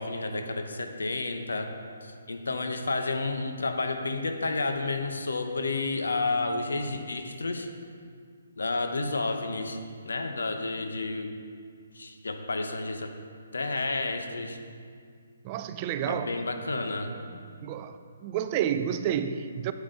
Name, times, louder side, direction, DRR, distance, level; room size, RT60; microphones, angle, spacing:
voice 1, 0.0-1.7 2.0-7.7 8.6-9.8 10.0-11.3 11.9-13.1 13.5-14.6 16.1-17.1, left 3 dB, 85° left, 5 dB, 1.0 m, -31 dB
voice 2, 15.4-16.3 17.6-19.7, right 9 dB, 25° right, 10 dB, 0.4 m, -30 dB
9.4 x 8.6 x 3.9 m, 2.2 s
hypercardioid pair, 155°, 0 cm